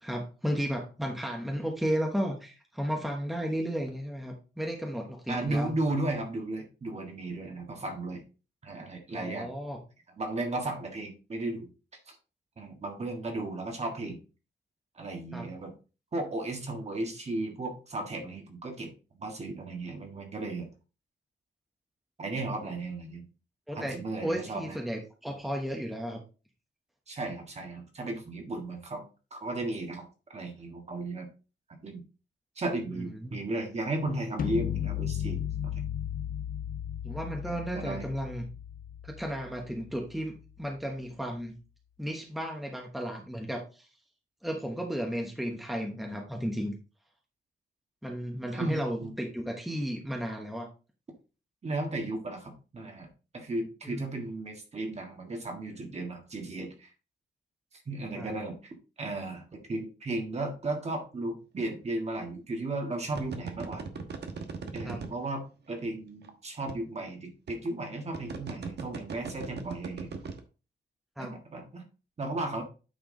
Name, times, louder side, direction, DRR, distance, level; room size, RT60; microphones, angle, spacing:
voice 1, 0.0-5.7 9.1-9.8 15.3-15.5 23.7-26.2 32.9-33.3 37.0-38.4 39.0-41.5 42.0-43.9 44.4-46.7 48.0-50.7 53.8-54.1 58.2-58.3 64.8-65.0 71.2-71.3, equal, ahead, 1 dB, 1.1 m, -34 dB
voice 2, 5.3-8.2 8.6-9.5 10.2-11.7 12.1-12.2 12.6-14.2 15.0-15.7 16.1-20.7 22.2-23.3 23.8-24.8 27.1-29.0 29.3-31.3 31.8-32.0 32.6-35.7 37.5-38.1 48.5-49.1 51.6-56.9 57.9-63.8 64.7-70.1 71.2-71.8 72.2-72.6, right 2 dB, 35° right, 3 dB, 1.7 m, -35 dB
sound 1, 34.4-40.4, left 10 dB, 50° left, 0.5 m, -35 dB
sound 2, 61.6-61.8 63.1-65.3 66.2-66.3 66.7-66.8 67.5-67.7 68.1-70.4, right 5 dB, 65° right, 1.2 m, -38 dB
9.1 x 4.8 x 3.8 m, 0.33 s
wide cardioid pair, 180°, 19 cm